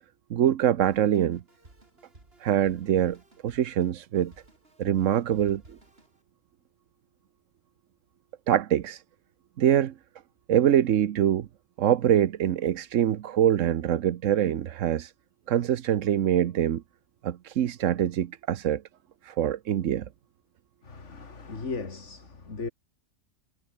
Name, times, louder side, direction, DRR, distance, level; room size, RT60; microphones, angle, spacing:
voice 1, 0.3-1.4 2.4-4.3 4.8-5.8 8.5-9.0 9.6-9.9 10.5-11.5 11.8-15.1 15.5-16.8 17.2-18.8 19.2-20.1, right 10 dB, 75° right, 1.2 m, -24 dB
Drum kit, 0.8-6.2, right 2 dB, 50° right, 4.5 m, -56 dB
voice 2, 20.8-22.7, left 4 dB, 65° left, 2.8 m, -37 dB
omnidirectional pair, 1.3 m